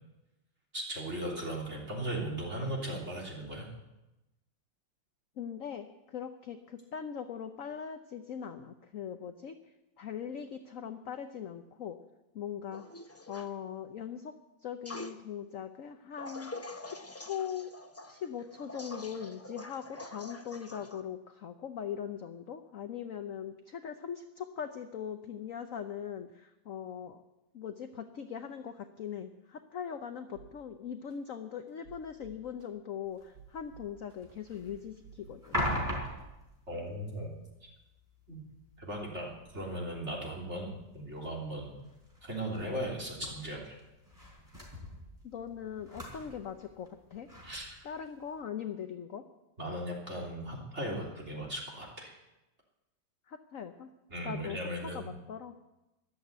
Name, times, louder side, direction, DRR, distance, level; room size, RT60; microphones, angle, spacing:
voice 1, 0.7-3.7 36.7-37.3 37.6-37.7 38.3-38.4 38.8-41.7 42.2-43.8 47.4-47.8 49.6-52.2 54.1-55.1, right 1 dB, 35° right, -2 dB, 3.8 m, -37 dB
voice 2, 5.4-12.0 12.3-12.9 13.3-14.3 14.6-17.7 18.1-27.2 27.5-35.6 45.2-47.3 47.8-49.2 53.3-53.9 54.2-55.6, left 8 dB, 55° left, 8 dB, 1.0 m, -41 dB
sound 1, 12.7-13.5 14.9-15.2 16.2-21.0, left 2 dB, 25° left, 0.3 m, -45 dB
sound 2, 30.3-30.5 31.1-31.2 31.7-32.7 33.2-34.3 34.7-35.7 36.0-36.2, right 8 dB, 80° right, 3.3 m, -54 dB
sound 3, 33.1-48.4, equal, 10° right, 4.6 m, -43 dB
14.0 x 11.5 x 8.1 m, 0.98 s
omnidirectional pair, 2.1 m